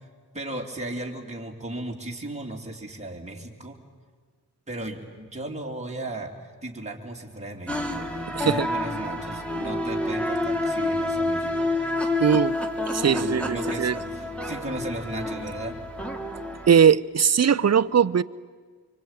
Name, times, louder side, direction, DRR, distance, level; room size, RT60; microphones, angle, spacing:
voice 1, 0.3-3.8 4.7-6.3 6.6-8.1 8.4-11.5 13.1-15.8, right 1 dB, 15° right, 3.3 m, -35 dB
sound 1, 7.7-16.7, left 1 dB, 5° left, 2.6 m, -28 dB
voice 2, 8.3-8.7 12.2-12.6 12.9-14.0 16.7-18.2, right 7 dB, 40° right, 0.7 m, -20 dB
25.0 x 24.5 x 9.1 m
wide cardioid pair, 90°, 40 cm